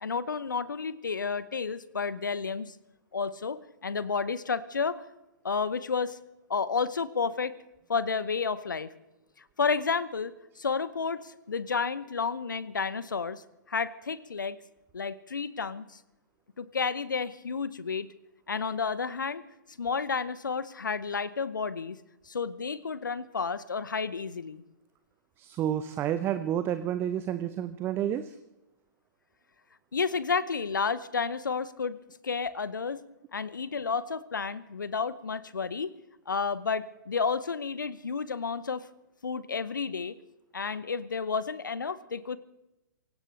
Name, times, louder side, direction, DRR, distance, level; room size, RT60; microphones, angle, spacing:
voice 1, 0.0-2.8 3.1-5.0 5.4-6.2 6.5-7.6 7.9-8.9 9.6-14.6 14.9-16.0 16.6-18.1 18.5-19.4 19.8-22.0 22.2-24.6 29.9-32.0 32.2-33.0 33.3-35.9 36.3-38.9 39.2-40.2 40.5-42.4, left 5 dB, 70° left, 17 dB, 0.9 m, -31 dB
voice 2, 25.4-28.4, right 10 dB, 20° right, 12 dB, 0.7 m, -30 dB
26.0 x 16.5 x 3.3 m, 0.94 s
figure-of-eight pair, 115°, 11 cm